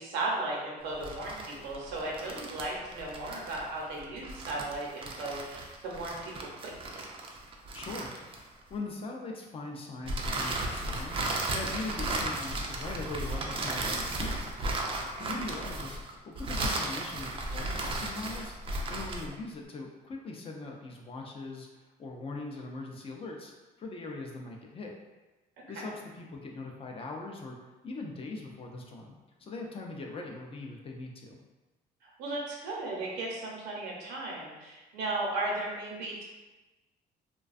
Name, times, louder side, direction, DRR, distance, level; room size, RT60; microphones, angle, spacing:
voice 1, 0.0-7.1 15.1-15.4 25.8-25.9 32.0-36.2, right 2 dB, 85° right, -3 dB, 0.7 m, -36 dB
sound 1, 0.9-8.7 10.1-19.3, right 2 dB, 35° right, 0.3 m, -35 dB
voice 2, 7.7-8.1 8.7-14.5 15.2-18.6 18.9-23.5 23.8-24.9 25.7-27.6 27.8-29.1 29.4-31.4, left 3 dB, 35° left, 1 dB, 0.4 m, -41 dB
2.4 x 2.2 x 2.4 m, 1.2 s
cardioid pair, 110°, 17 cm